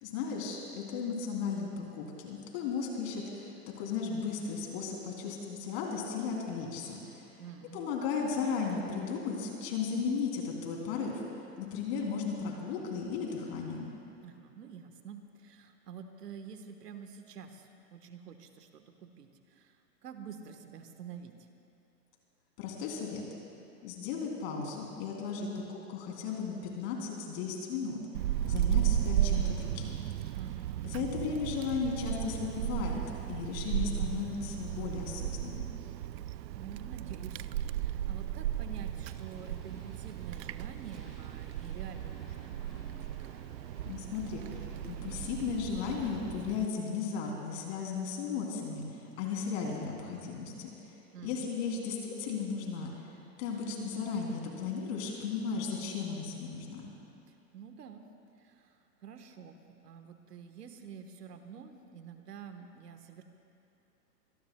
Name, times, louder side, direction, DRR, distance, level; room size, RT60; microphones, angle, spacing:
voice 1, 0.0-7.3 7.7-11.2 11.6-13.9 22.6-23.2 23.8-28.0 28.4-30.0 30.8-33.0 33.3-35.7 43.8-48.8 49.2-50.7 51.2-52.9 53.4-56.9, left 5 dB, 40° left, -1 dB, 3.1 m, -35 dB
voice 2, 7.4-7.8 14.2-21.3 30.3-30.9 36.2-43.1 51.1-51.5 57.5-58.1 58.4-63.2, right 7 dB, 70° right, 6 dB, 1.4 m, -48 dB
Wind, 28.1-46.7, right 12 dB, 90° right, 0.5 m, -35 dB
sound 1, 38.9-45.3, right 1 dB, 5° right, 0.3 m, -55 dB
25.5 x 18.0 x 2.3 m, 2.9 s
hypercardioid pair, 145°, 49 cm